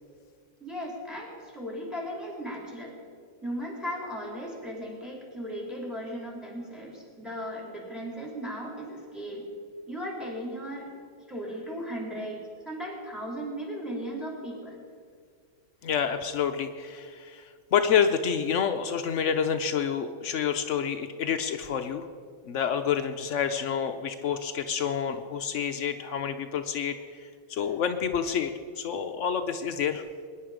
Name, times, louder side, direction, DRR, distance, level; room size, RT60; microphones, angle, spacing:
voice 1, 0.6-2.9 3.4-9.5 9.9-10.9 11.3-14.8, equal, ahead, -1 dB, 3.4 m, -36 dB
voice 2, 15.8-22.1 22.5-30.0, left 7 dB, 85° left, 7 dB, 0.6 m, -28 dB
22.0 x 10.0 x 5.0 m, 2.1 s
omnidirectional pair, 2.1 m